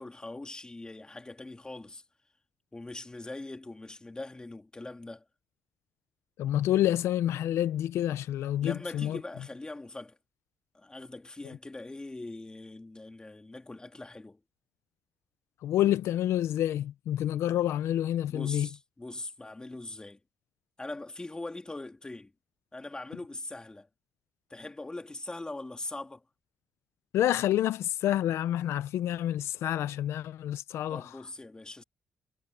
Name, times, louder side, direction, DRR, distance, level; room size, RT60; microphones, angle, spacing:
voice 1, 0.0-2.0 2.7-5.2 8.6-10.2 10.7-14.4 18.3-20.2 20.8-22.3 22.7-23.9 24.5-26.2 30.9-31.8, left 2 dB, 20° left, 3.3 m, -41 dB
voice 2, 6.4-9.2 15.6-18.7 27.1-31.0, left 12 dB, 85° left, 0.6 m, -28 dB
cardioid pair, 80°, 4 cm